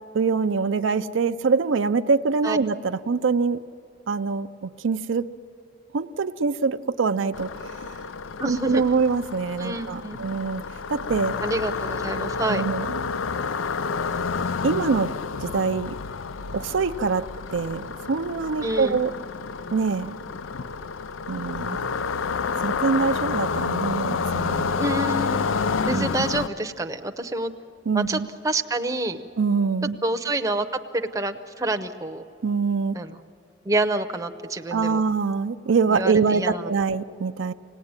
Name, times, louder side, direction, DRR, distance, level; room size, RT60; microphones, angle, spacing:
voice 1, 0.1-3.6 4.1-5.3 5.9-8.0 8.4-10.6 10.9-11.4 12.5-13.0 14.6-15.1 15.4-15.9 16.5-19.1 19.7-20.2 21.3-21.9 22.6-24.7 25.9-26.1 27.9-28.3 29.4-30.0 32.4-33.0 34.7-37.5, right 4 dB, 75° right, 10 dB, 0.5 m, -24 dB
sound 1, 7.3-26.5, left 5 dB, 85° left, 0.5 m, -29 dB
voice 2, 8.4-8.8 9.6-10.3 11.4-12.6 18.6-19.0 24.8-25.5 25.8-27.5 27.9-29.2 30.0-30.6 30.9-32.2 32.9-33.2 33.6-35.0 35.9-36.7, right 2 dB, 15° right, 6 dB, 0.7 m, -27 dB
26.0 x 18.0 x 9.6 m, 2.8 s
head